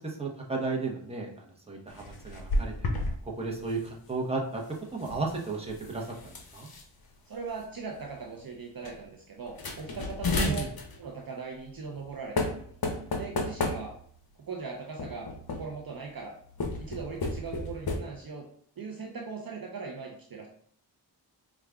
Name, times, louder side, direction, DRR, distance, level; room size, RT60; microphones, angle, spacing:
voice 1, 0.0-2.9 3.3-4.6 4.9-6.7 10.4-10.7, right 3 dB, 15° right, -1 dB, 0.9 m, -34 dB
sound 1, 1.9-3.2 3.4-3.8 4.9-6.8 7.6-7.7 8.0-8.3 8.8-8.9 9.5-11.0 11.9-12.1 12.4-14.2 15.0-15.9 16.5-18.0, left 2 dB, 50° left, 0.7 m, -33 dB
voice 2, 7.3-10.6 11.0-12.5 13.1-13.9 14.4-16.4 16.8-18.5 18.8-20.5, right 5 dB, 50° right, 0 dB, 0.6 m, -39 dB
4.7 x 2.4 x 2.3 m, 0.62 s
cardioid pair, 45°, 45 cm